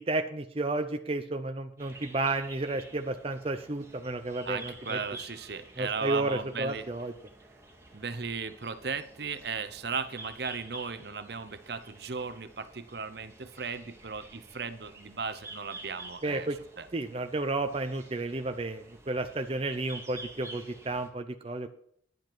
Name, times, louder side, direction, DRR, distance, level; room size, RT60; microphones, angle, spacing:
voice 1, 0.0-5.0 5.8-7.1 16.2-16.6 16.9-21.7, right 2 dB, 30° right, 6 dB, 0.6 m, -32 dB
sound 1, 1.8-21.1, right 2 dB, 15° right, 2.1 m, -49 dB
voice 2, 4.5-6.9 7.9-16.5 16.8-16.9, right 5 dB, 60° right, 11 dB, 0.8 m, -36 dB
11.0 x 7.9 x 6.1 m, 0.65 s
head